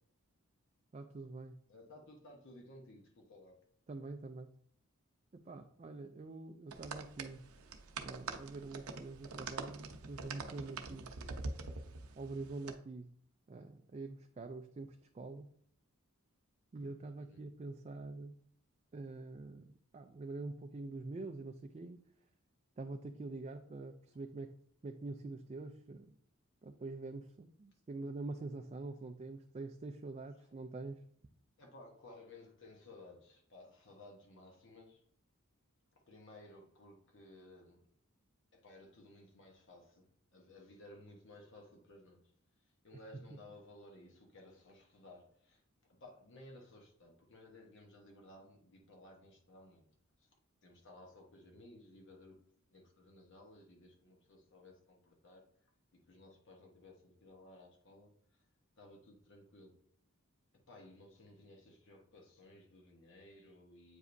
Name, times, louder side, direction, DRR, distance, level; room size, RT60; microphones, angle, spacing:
voice 1, 0.9-1.6 3.9-4.5 5.3-7.5 8.0-11.2 12.2-13.1 13.5-15.5 16.7-18.4 18.9-22.0 22.8-24.5 24.8-26.2 26.6-31.0, right 3 dB, 30° right, 6 dB, 0.3 m, -45 dB
voice 2, 1.7-3.6 17.2-17.5 31.6-35.0 36.1-37.9 38.5-42.3 42.6-50.3 50.6-52.4 52.7-55.7 56.1-58.4 58.8-59.8 60.7-64.0, left 1 dB, 60° left, 1 dB, 1.0 m, -57 dB
sound 1, 6.7-12.7, right 4 dB, 90° right, 0.7 m, -45 dB
8.1 x 5.0 x 2.6 m, 0.62 s
head